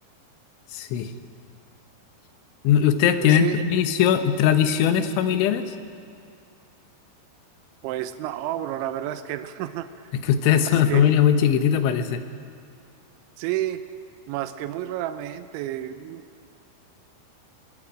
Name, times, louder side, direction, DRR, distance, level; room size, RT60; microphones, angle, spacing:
voice 1, 0.7-1.1 2.7-5.7 10.2-12.2, left 9 dB, 90° left, 8 dB, 3.5 m, -20 dB
voice 2, 3.2-3.6 7.8-9.9 10.5-10.6 10.9-11.1 13.4-13.8 14.3-16.3, right 13 dB, 85° right, 10 dB, 3.1 m, -30 dB
23.0 x 22.5 x 5.0 m, 2.4 s
omnidirectional pair, 5.3 m